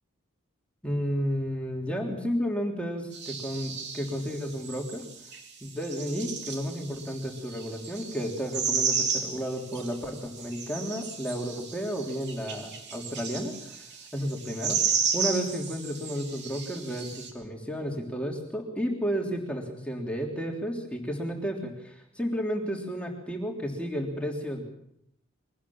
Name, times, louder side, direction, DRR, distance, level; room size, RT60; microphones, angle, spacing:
voice 1, 0.8-5.0 5.6-13.8 14.1-14.8 15.1-24.6, equal, 5° left, 0 dB, 3.3 m, -32 dB
sound 1, 3.1-17.3, right 6 dB, 55° right, 3.5 m, -33 dB
23.5 x 19.0 x 7.2 m, 0.76 s
head